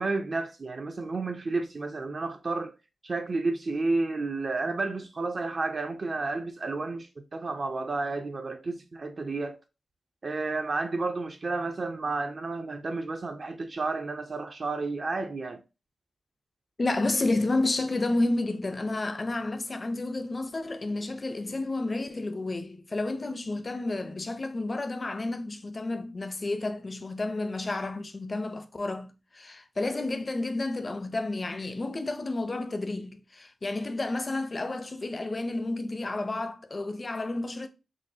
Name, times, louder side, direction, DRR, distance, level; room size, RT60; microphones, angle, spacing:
voice 1, 0.0-2.7 3.0-9.6 10.2-15.6, right 3 dB, 40° right, 0.3 m, -31 dB
voice 2, 16.8-37.7, left 2 dB, 30° left, 0.4 m, -31 dB
6.0 x 2.0 x 2.7 m
wide cardioid pair, 140°, 0 cm